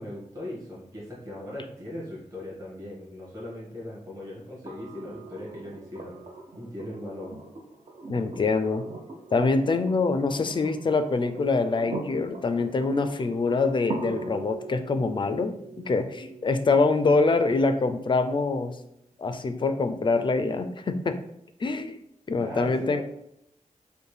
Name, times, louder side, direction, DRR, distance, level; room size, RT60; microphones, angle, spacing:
voice 1, 0.0-6.2 6.5-7.4 22.4-23.0, left 1 dB, 25° right, -7 dB, 1.5 m, -38 dB
sound 1, 4.7-18.6 20.3-20.4, right 3 dB, 50° right, 0.6 m, -41 dB
voice 2, 8.1-8.9 9.3-18.8 19.2-21.2 21.6-22.0 22.3-23.0, left 3 dB, 35° left, 9 dB, 0.4 m, -25 dB
5.1 x 2.2 x 3.2 m, 0.76 s
wide cardioid pair, 135°, 13 cm